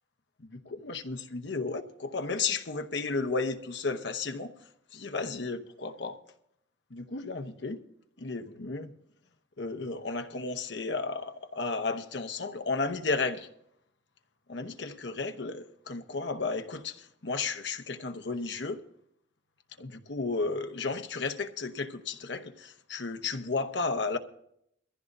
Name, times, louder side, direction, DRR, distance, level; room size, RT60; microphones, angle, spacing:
voice 1, 0.4-4.5 4.9-6.2 6.9-7.8 8.2-8.9 9.6-13.5 14.5-18.8 19.8-24.2, left 4 dB, 65° left, 0.9 m, -33 dB
22.0 x 15.0 x 2.6 m
head